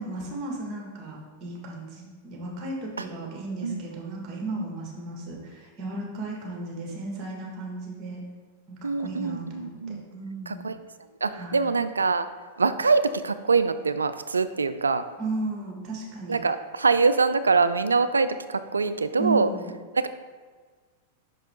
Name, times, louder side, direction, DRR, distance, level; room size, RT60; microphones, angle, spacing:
voice 1, 0.0-8.2 8.7-10.6 11.3-11.6 15.2-16.4 19.2-19.7, right 3 dB, 35° right, -1 dB, 1.7 m, -35 dB
voice 2, 8.8-10.0 10.5-10.7 11.2-12.3 12.6-15.0 16.3-19.5 19.9-20.1, right 4 dB, 90° right, 12 dB, 0.3 m, -24 dB
5.6 x 5.4 x 3.6 m, 1.5 s
hypercardioid pair, 100°, 0 cm